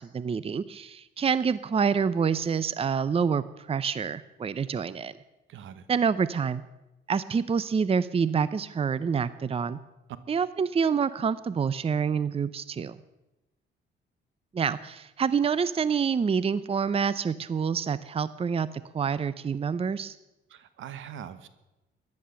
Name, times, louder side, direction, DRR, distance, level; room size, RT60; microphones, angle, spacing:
voice 1, 0.0-5.1 5.9-6.6 7.1-9.8 10.3-13.0 14.5-20.2, right 6 dB, 30° right, 16 dB, 0.6 m, -27 dB
voice 2, 5.5-5.9 20.5-21.5, right 9 dB, 75° right, 13 dB, 1.2 m, -42 dB
14.0 x 11.0 x 6.9 m, 0.99 s
cardioid pair, 90°, 20 cm